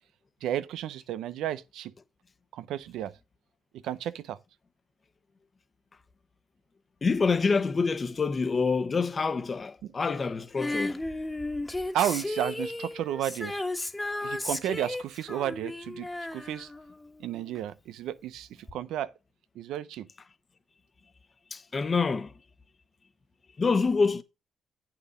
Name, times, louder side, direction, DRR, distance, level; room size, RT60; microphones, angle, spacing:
voice 1, 0.4-1.9 2.5-3.1 3.7-4.4 9.8-9.9 11.9-13.6 14.2-16.7 17.2-19.1 19.6-20.1, right 11 dB, 85° right, 0.5 m, -32 dB
voice 2, 7.0-11.0 21.5-22.3 23.6-24.2, left 4 dB, 35° left, 1.0 m, -26 dB
Female singing, 10.6-17.5 18.7-18.8, left 2 dB, 10° left, 1.4 m, -34 dB
8.3 x 5.8 x 5.4 m
cardioid pair, 90°, 0 cm